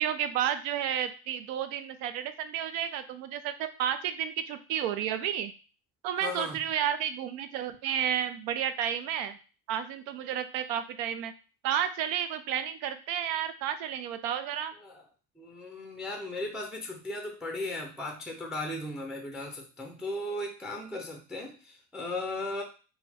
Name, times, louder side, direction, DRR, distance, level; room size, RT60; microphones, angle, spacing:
voice 1, 0.0-5.5 6.0-9.4 9.7-11.3 11.6-14.7, right 9 dB, 85° right, 10 dB, 0.6 m, -31 dB
voice 2, 6.2-6.6 14.8-15.0 15.4-22.6, left 2 dB, ahead, 2 dB, 0.4 m, -36 dB
4.0 x 2.2 x 4.2 m, 0.35 s
cardioid pair, 140°, 38 cm